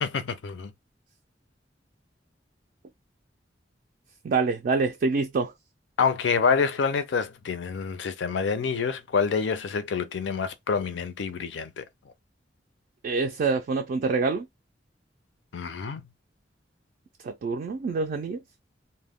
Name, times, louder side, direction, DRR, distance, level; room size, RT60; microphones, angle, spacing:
voice 1, 0.0-0.7 6.0-11.9 15.5-16.0, left 5 dB, 85° left, 0.4 m, -27 dB
voice 2, 4.2-5.5 13.0-14.5 17.2-18.4, right 4 dB, 50° right, 0.3 m, -26 dB
2.1 x 2.1 x 3.4 m
head